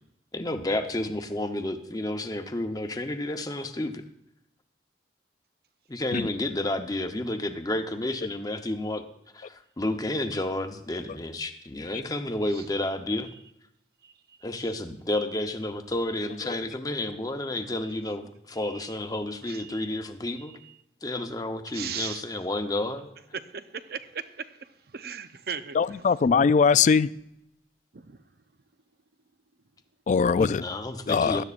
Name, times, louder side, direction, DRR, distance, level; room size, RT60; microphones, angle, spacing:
voice 1, 0.3-4.0 5.9-9.0 9.3-13.3 14.4-20.5 21.0-23.1 30.4-31.4, left 1 dB, 20° left, 0.8 m, -31 dB
voice 2, 14.0-14.6 18.5-19.0 19.4-19.9 20.4-20.8 21.7-22.3 23.3-26.2 27.9-28.4, right 7 dB, 60° right, 0.7 m, -40 dB
voice 3, 25.8-27.1 30.1-30.6 31.1-31.4, left 5 dB, 45° left, 0.3 m, -21 dB
16.5 x 12.0 x 2.5 m
head